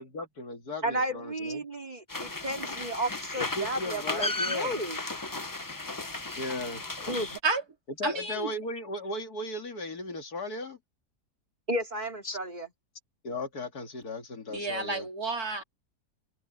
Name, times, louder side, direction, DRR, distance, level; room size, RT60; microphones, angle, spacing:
voice 1, 0.0-1.6 3.4-4.8 6.4-6.8 8.0-10.8 12.2-12.4 13.2-15.1, left 2 dB, 70° left, 2.8 m, -36 dB
voice 2, 0.8-5.0 7.0-7.4 11.7-12.7, right 1 dB, 25° right, 2.7 m, -33 dB
sound 1, 2.1-7.4, left 2 dB, 20° left, 0.6 m, -35 dB
voice 3, 8.0-8.5 14.5-15.6, right 3 dB, 65° right, 3.9 m, -30 dB
omnidirectional pair, 1.7 m